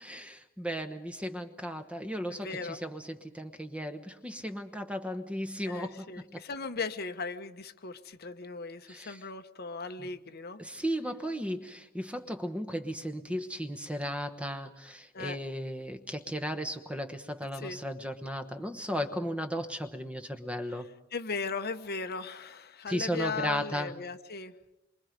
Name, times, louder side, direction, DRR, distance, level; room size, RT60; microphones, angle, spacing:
voice 1, 0.0-6.4 8.9-9.2 10.0-10.1 10.6-20.9 22.9-24.0, equal, 5° right, 7 dB, 1.1 m, -35 dB
voice 2, 2.4-2.8 5.6-10.6 15.1-15.4 17.6-17.8 21.1-24.5, left 4 dB, 45° left, 8 dB, 1.0 m, -37 dB
27.5 x 24.0 x 5.2 m, 0.90 s
head